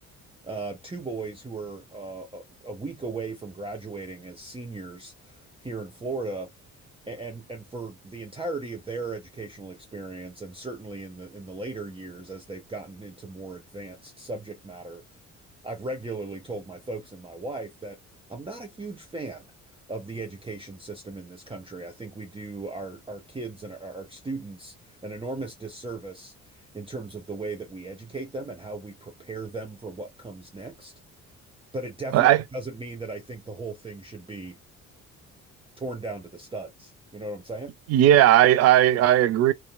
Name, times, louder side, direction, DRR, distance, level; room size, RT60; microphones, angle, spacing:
voice 1, 0.4-6.5 7.1-15.0 15.6-18.0 18.3-19.5 19.9-24.7 25.0-30.9 31.7-34.6 35.8-37.7, right 3 dB, 15° right, 0.7 m, -37 dB
voice 2, 32.1-32.4 37.9-39.5, right 12 dB, 35° right, 0.4 m, -17 dB
2.8 x 2.3 x 2.2 m
figure-of-eight pair, 50°, 43 cm